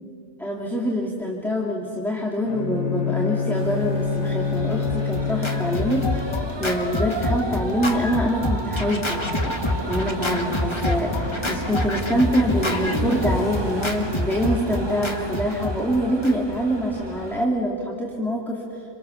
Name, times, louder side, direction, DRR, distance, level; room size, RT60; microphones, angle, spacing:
voice 1, 0.4-18.8, equal, ahead, -1 dB, 2.4 m, -25 dB
Bowed string instrument, 2.4-6.5, left 5 dB, 90° left, 1.5 m, -26 dB
sound 1, 3.5-17.5, right 2 dB, 20° right, 1.3 m, -34 dB
Scratching (performance technique), 4.5-16.6, left 2 dB, 20° left, 1.7 m, -27 dB
28.0 x 27.0 x 7.0 m, 2.5 s
omnidirectional pair, 1.4 m